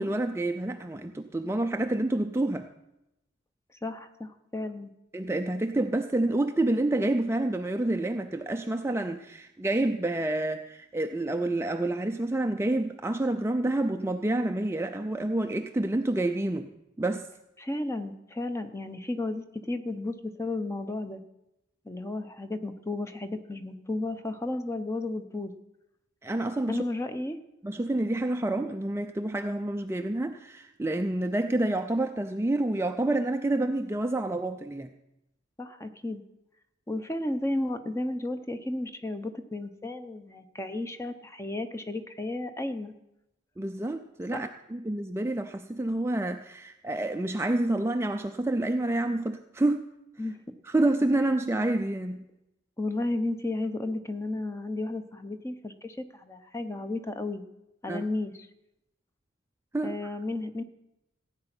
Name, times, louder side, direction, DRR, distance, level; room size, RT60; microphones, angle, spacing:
voice 1, 0.0-2.7 5.1-16.7 17.0-17.3 26.2-26.8 27.6-34.9 43.6-49.8 50.7-52.3 57.9-58.0 59.7-60.1, right 2 dB, 15° right, 6 dB, 0.4 m, -28 dB
voice 2, 3.8-4.9 17.6-21.2 21.9-25.5 26.7-27.4 35.6-36.2 36.9-42.9 44.3-44.5 50.2-50.4 52.8-57.4 57.8-58.5 59.8-60.6, left 2 dB, 15° left, 9 dB, 0.7 m, -33 dB
15.5 x 8.9 x 6.0 m, 0.89 s
head